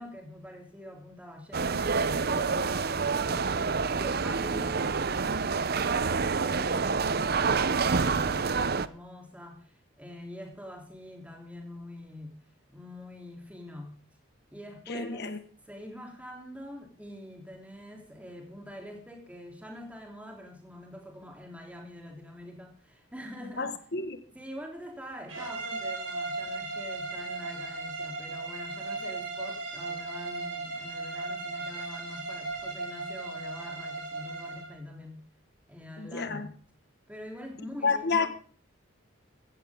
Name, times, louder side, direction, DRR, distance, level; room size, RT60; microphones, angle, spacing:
voice 1, 0.0-3.5 3.9-12.4 12.7-14.0 14.5-15.3 15.6-23.7 24.3-35.2 35.7-36.5 37.1-38.3, left 1 dB, 5° right, 3.3 m, -45 dB
sound 1, 1.5-8.9, right 5 dB, 50° right, 0.6 m, -27 dB
voice 2, 14.9-15.4 23.6-24.2 36.0-36.5 37.8-38.3, left 4 dB, 55° left, 1.6 m, -29 dB
sound 2, 25.3-34.8, right 3 dB, 75° right, 5.2 m, -36 dB
16.0 x 15.0 x 3.7 m
head